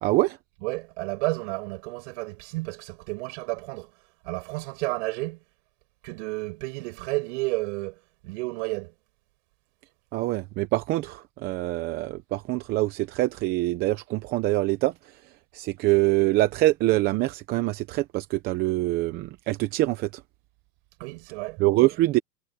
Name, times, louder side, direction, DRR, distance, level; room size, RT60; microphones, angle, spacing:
voice 1, 0.0-0.4 10.1-14.9 15.5-20.2 21.6-22.2, right 18 dB, 20° right, 0.8 m, -24 dB
voice 2, 0.6-3.9 4.2-5.4 6.0-8.9 21.0-21.6, right 25 dB, 45° right, 7.9 m, -31 dB
hypercardioid pair, 150°, 49 cm